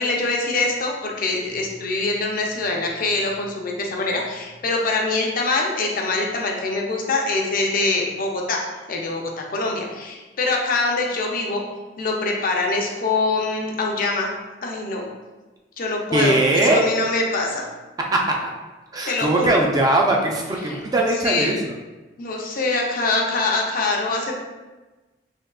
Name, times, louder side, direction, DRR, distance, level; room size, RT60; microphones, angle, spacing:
voice 1, 0.0-11.6 12.0-14.3 14.6-15.0 15.8-17.7 19.0-19.6 20.6-20.8 21.2-21.6 22.2-24.3, left 3 dB, 50° left, 0 dB, 0.5 m, -24 dB
voice 2, 16.1-16.8 18.1-18.2 18.9-21.6, right 2 dB, 20° right, 0 dB, 0.3 m, -20 dB
3.5 x 2.7 x 2.3 m, 1.2 s
head